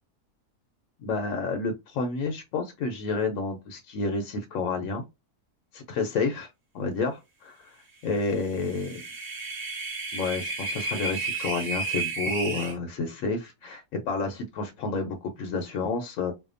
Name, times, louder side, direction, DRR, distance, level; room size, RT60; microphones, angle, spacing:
voice 1, 1.0-5.0 5.7-6.5 6.7-7.8 8.0-9.0 10.1-16.3, left 4 dB, 70° left, 0.9 m, -30 dB
sound 1, 8.4-12.7, right 3 dB, 35° right, 0.7 m, -32 dB
2.7 x 2.1 x 2.4 m
omnidirectional pair, 1.7 m